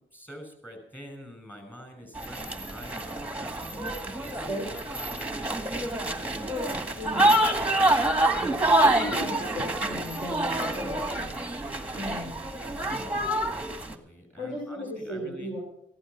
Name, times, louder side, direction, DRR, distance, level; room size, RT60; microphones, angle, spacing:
voice 1, 0.1-6.5 7.2-9.8 10.8-11.2 12.6-15.6, equal, 10° left, 5 dB, 5.9 m, -47 dB
sound 1, 2.1-13.9, right 1 dB, 5° right, 1.9 m, -27 dB
voice 2, 7.0-7.4 8.8-11.4 11.9-12.4 14.4-15.6, left 1 dB, 45° left, -3 dB, 6.1 m, -36 dB
15.0 x 11.5 x 5.9 m, 0.74 s
cardioid pair, 90°, 20 cm